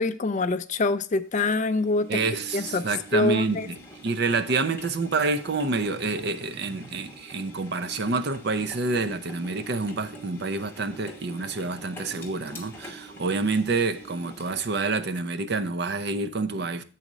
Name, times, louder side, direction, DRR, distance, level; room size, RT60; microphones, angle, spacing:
voice 1, 0.0-2.2 2.5-3.7, left 3 dB, 35° left, 0.4 m, -25 dB
Engine, 1.4-14.8, right 1 dB, 10° left, 1.1 m, -45 dB
voice 2, 2.1-16.8, right 3 dB, 50° right, 0.6 m, -28 dB
7.8 x 4.1 x 6.1 m
head